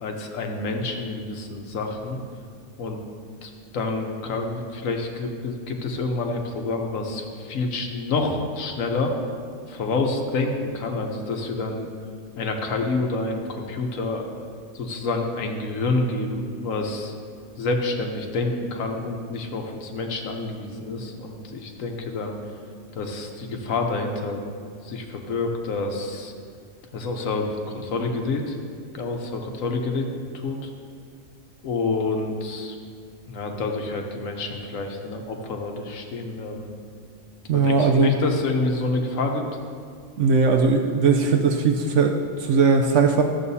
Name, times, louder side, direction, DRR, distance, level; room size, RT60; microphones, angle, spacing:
voice 1, 0.0-2.2 2.8-3.0 3.4-9.1 9.7-11.9 12.4-14.2 14.7-17.1 17.6-22.4 22.9-24.4 24.8-26.3 26.9-28.6 28.9-30.7 31.6-32.8 33.3-36.7 37.5-39.4, left 3 dB, 85° left, 3 dB, 1.3 m, -28 dB
voice 2, 37.5-38.1 40.2-43.2, right 4 dB, 70° right, 3 dB, 0.9 m, -19 dB
14.0 x 7.6 x 2.7 m, 2.2 s
omnidirectional pair, 1.3 m